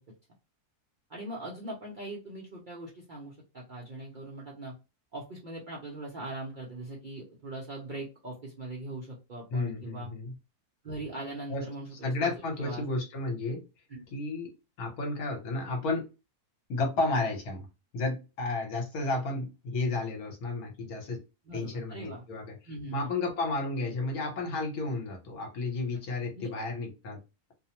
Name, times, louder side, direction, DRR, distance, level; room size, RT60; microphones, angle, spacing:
voice 1, 1.1-4.8 5.1-10.1 10.8-12.3 12.6-12.8 13.9-14.0 21.5-22.2 22.7-23.1 26.4-26.7, right 2 dB, 55° right, -4 dB, 0.5 m, -41 dB
voice 2, 9.5-10.3 11.5-11.6 12.0-13.6 14.1-16.1 16.7-17.7 17.9-21.2 21.5-22.6 22.9-27.2, left 3 dB, 70° left, 2 dB, 1.3 m, -32 dB
2.7 x 2.0 x 2.8 m, 0.27 s
omnidirectional pair, 1.6 m